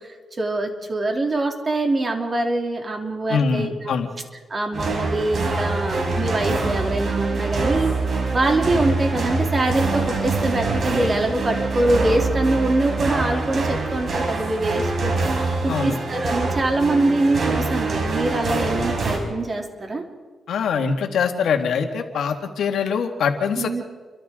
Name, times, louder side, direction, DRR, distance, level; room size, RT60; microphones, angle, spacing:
voice 1, 0.0-4.0 4.5-7.9 8.3-15.1 15.6-20.0 23.6-23.8, right 2 dB, 35° right, 2 dB, 3.1 m, -24 dB
voice 2, 3.3-4.1 15.7-16.0 20.5-23.8, left 6 dB, 85° left, 4 dB, 2.1 m, -23 dB
sound 1, 4.7-19.2, right 3 dB, 55° right, 5.3 m, -24 dB
29.5 x 24.0 x 3.8 m, 1.4 s
cardioid pair, 105°, 0 cm